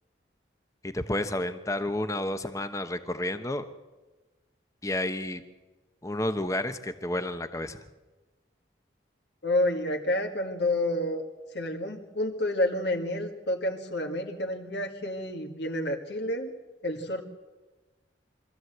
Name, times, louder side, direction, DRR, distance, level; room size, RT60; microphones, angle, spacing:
voice 1, 0.8-3.6 4.8-5.4 6.0-7.8, left 1 dB, 15° left, 9 dB, 1.0 m, -31 dB
voice 2, 9.4-11.2 11.5-16.5 16.8-17.2, left 1 dB, 65° left, 3 dB, 1.9 m, -29 dB
24.0 x 14.5 x 8.0 m, 1.2 s
head